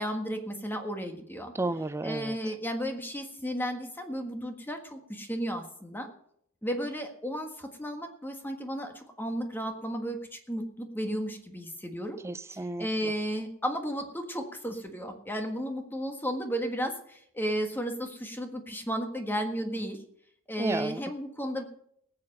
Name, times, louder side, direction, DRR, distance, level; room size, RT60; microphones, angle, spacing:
voice 1, 0.0-1.5 2.0-6.1 6.6-12.2 12.8-20.0 20.5-21.6, equal, 10° left, 5 dB, 1.5 m, -34 dB
voice 2, 1.5-2.5 12.2-13.1 20.6-21.0, right 2 dB, 10° right, 14 dB, 0.4 m, -33 dB
18.5 x 7.8 x 5.4 m, 0.68 s
head